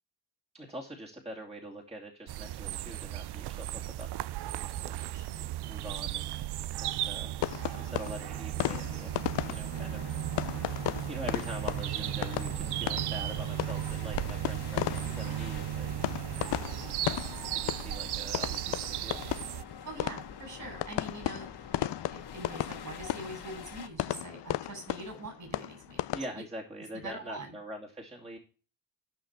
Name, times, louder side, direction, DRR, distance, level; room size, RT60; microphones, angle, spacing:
voice 1, 0.5-3.7 4.0-5.2 5.6-6.4 6.8-7.4 7.8-9.2 9.5-10.5 11.1-16.1 17.4-19.2 26.1-28.4, right 1 dB, 15° right, -1 dB, 2.6 m, -44 dB
sound 1, 2.3-19.6, right 13 dB, 70° right, 0.5 m, -35 dB
voice 2, 5.1-5.5 6.0-6.2 17.6-17.9 19.8-21.5 21.8-26.1 26.9-27.6, right 2 dB, 45° right, 4 dB, 7.6 m, -44 dB
sound 2, 7.4-26.3, left 14 dB, 85° left, 0.6 m, -36 dB
sound 3, 9.7-23.9, left 7 dB, 65° left, 2.3 m, -46 dB
13.5 x 5.8 x 5.9 m, 0.35 s
cardioid pair, 95°, 41 cm